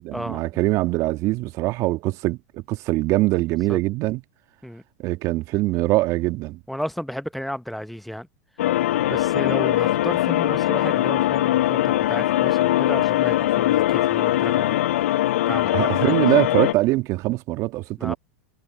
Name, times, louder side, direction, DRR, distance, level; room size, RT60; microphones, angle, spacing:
voice 1, 0.0-4.2 5.0-6.6 15.7-18.1, right 19 dB, 45° right, 2.1 m, -23 dB
voice 2, 6.7-8.3 9.1-14.8 15.5-16.3 18.0-18.1, equal, ahead, 1.1 m, -32 dB
sound 1, 8.6-16.7, left 14 dB, 70° left, 0.6 m, -21 dB
hypercardioid pair, 100°, 8 cm